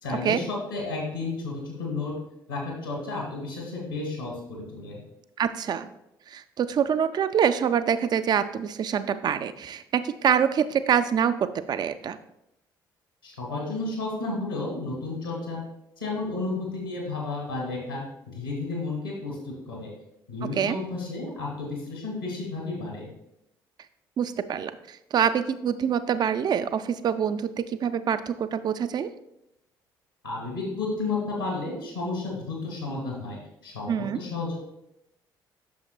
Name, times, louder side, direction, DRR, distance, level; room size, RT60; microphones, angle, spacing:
voice 1, 0.0-2.1 2.5-5.0 13.2-15.6 16.0-19.9 20.3-23.1 30.2-34.6, left 3 dB, 85° left, -2 dB, 1.8 m, -32 dB
voice 2, 5.4-5.9 6.3-12.2 20.5-20.7 24.2-29.1 33.9-34.2, right 8 dB, 40° right, 12 dB, 0.4 m, -25 dB
8.5 x 6.4 x 2.3 m, 0.83 s
figure-of-eight pair, 50°, 11 cm